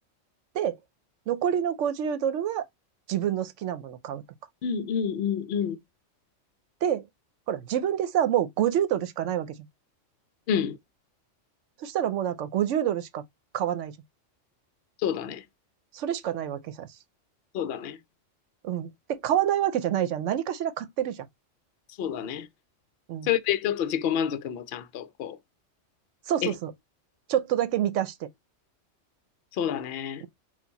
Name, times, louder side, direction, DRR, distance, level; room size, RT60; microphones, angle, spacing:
voice 1, 1.3-2.7 3.1-4.2 6.8-7.0 7.5-9.5 11.8-13.2 13.5-13.9 15.9-16.9 18.6-21.3 23.1-23.3 26.3-26.7 27.3-28.3 30.2-30.3, right 10 dB, 75° right, 0.9 m, -27 dB
voice 2, 4.6-5.8 10.5-10.8 15.0-15.4 17.5-18.0 22.0-22.5 23.2-25.4 26.4-26.5 29.6-30.2, left 8 dB, 65° left, 0.7 m, -28 dB
4.4 x 2.4 x 3.9 m
omnidirectional pair, 1.3 m